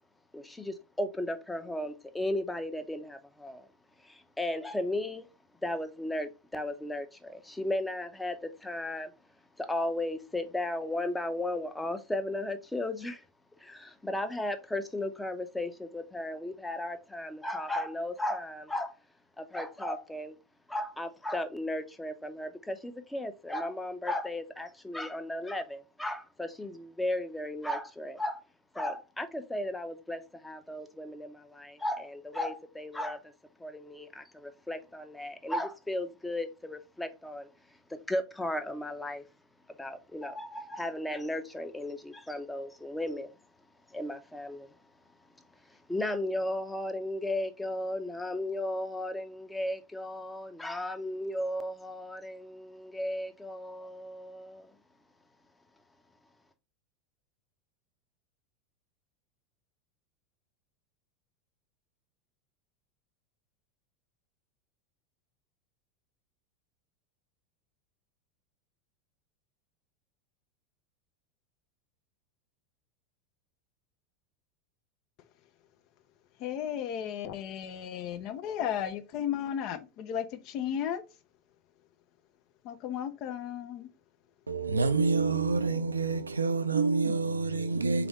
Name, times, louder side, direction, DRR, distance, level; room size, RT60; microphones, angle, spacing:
voice 1, 0.3-3.7 4.0-5.3 5.6-9.1 9.6-13.2 13.6-19.0 19.4-20.3 20.7-28.4 28.7-33.3 33.6-37.5 37.9-39.2 39.8-43.3 43.9-44.7 45.7-54.7, left 1 dB, 5° left, 0.6 m, -35 dB
voice 2, 76.4-81.0 82.6-83.9, left 9 dB, 45° left, 0.5 m, -34 dB
voice 3, 84.5-88.1, right 4 dB, 80° right, 0.4 m, -27 dB
3.5 x 3.4 x 3.6 m
figure-of-eight pair, 80°, 0 cm